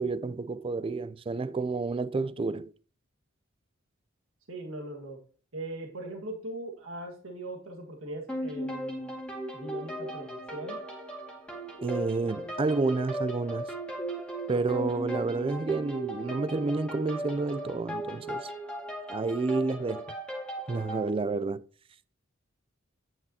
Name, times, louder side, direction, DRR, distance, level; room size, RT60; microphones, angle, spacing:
voice 1, 0.0-2.7 11.8-13.7 14.5-18.5 19.1-20.1 20.7-21.6, right 3 dB, 25° right, 0.3 m, -30 dB
voice 2, 4.5-5.2 5.5-9.2 9.5-10.8, right 1 dB, 70° right, 1.8 m, -40 dB
sound 1, 8.3-21.1, right 1 dB, 5° left, 2.0 m, -37 dB
9.7 x 8.9 x 2.8 m
head